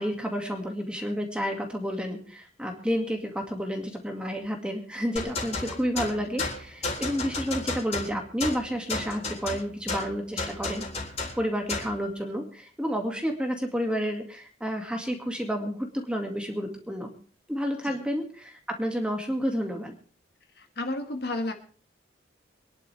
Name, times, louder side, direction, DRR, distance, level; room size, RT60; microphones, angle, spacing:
voice 1, 0.0-10.9 11.4-17.1 17.5-19.9, equal, 5° right, 3 dB, 2.0 m, -30 dB
sound 1, 5.2-12.0, left 3 dB, 35° left, 3.7 m, -33 dB
voice 2, 20.6-21.5, left 2 dB, 55° left, 5 dB, 1.8 m, -32 dB
24.5 x 11.0 x 3.4 m, 0.42 s
head